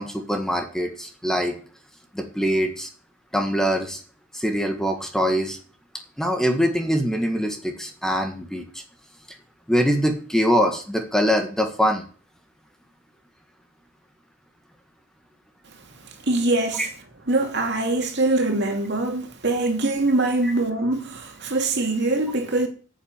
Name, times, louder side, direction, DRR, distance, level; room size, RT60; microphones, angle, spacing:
voice 1, 0.0-1.5 2.1-2.9 3.3-4.0 4.3-5.6 6.2-8.6 9.7-12.1 16.8-16.9 20.4-20.5, equal, 5° left, 1.8 m, -23 dB
voice 2, 16.2-16.9 17.3-22.7, right 2 dB, 60° right, 2.5 m, -23 dB
9.9 x 7.5 x 9.5 m
head